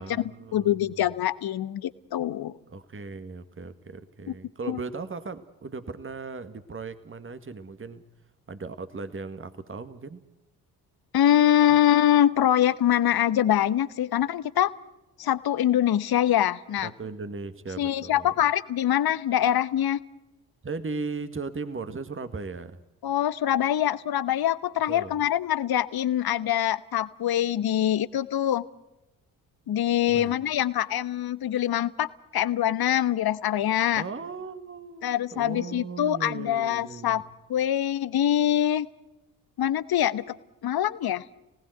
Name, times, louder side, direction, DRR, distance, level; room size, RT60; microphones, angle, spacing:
voice 1, 0.0-1.0 2.7-8.0 8.5-10.2 11.7-11.8 16.8-18.3 20.6-22.8 24.9-25.2 30.1-30.3 33.9-37.2, right 4 dB, 25° right, 11 dB, 1.8 m, -37 dB
voice 2, 0.5-2.5 4.3-4.4 4.7-4.8 11.1-14.7 15.2-16.9 17.8-20.0 23.0-28.6 29.7-32.1 32.3-34.0 35.0-37.2 37.5-38.9 39.6-40.4 40.6-41.2, left 11 dB, 50° left, 16 dB, 1.2 m, -24 dB
30.0 x 19.0 x 8.0 m, 0.98 s
hypercardioid pair, 45°, 47 cm